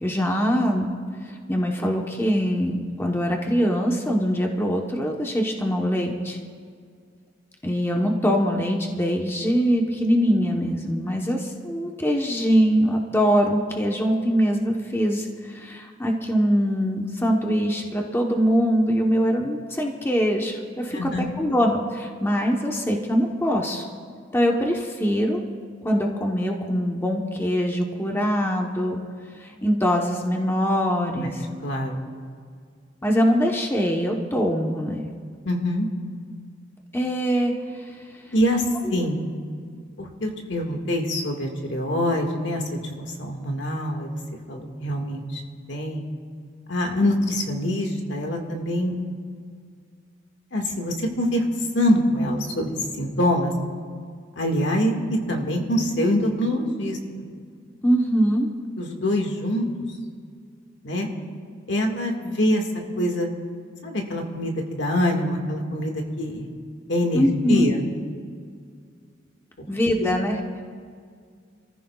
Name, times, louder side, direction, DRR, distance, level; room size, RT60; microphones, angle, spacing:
voice 1, 0.0-1.0 1.3-6.4 7.6-21.1 21.4-23.8 24.3-25.4 25.8-29.0 29.4-31.4 33.0-35.1 36.9-37.9 38.8-38.9 57.8-58.5 67.1-67.7 69.7-70.4, equal, 15° left, 0 dB, 1.0 m, -23 dB
voice 2, 20.9-21.3 31.2-31.3 31.6-32.0 35.5-35.9 38.3-38.6 38.9-39.2 40.0-44.2 44.5-45.4 45.7-46.0 46.7-48.9 50.5-51.4 51.7-53.5 54.4-57.0 58.8-59.7 60.8-61.1 61.7-62.6 63.0-63.3 63.8-66.5 66.9-67.8 70.0-70.2, left 1 dB, 65° left, 2 dB, 1.8 m, -24 dB
27.5 x 14.5 x 2.4 m, 2.1 s
head